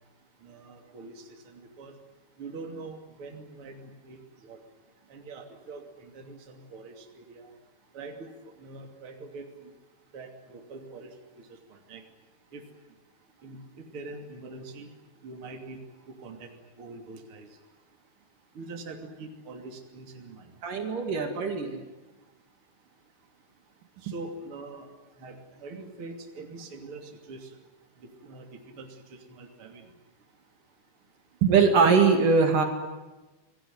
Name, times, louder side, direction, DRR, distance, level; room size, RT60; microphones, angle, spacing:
voice 1, 0.4-1.9 2.4-4.2 4.4-4.6 5.1-7.5 7.9-8.3 8.6-9.5 10.1-11.1 11.5-12.0 12.5-12.6 13.4-14.9 15.2-16.5 16.8-17.5 18.6-20.5 24.0-24.9 25.2-27.5 28.2-29.9, right 3 dB, 35° right, 4 dB, 3.3 m, -43 dB
voice 2, 20.6-21.9 31.4-32.6, right 5 dB, 60° right, 5 dB, 3.7 m, -21 dB
27.0 x 18.5 x 9.5 m, 1.1 s
omnidirectional pair, 4.3 m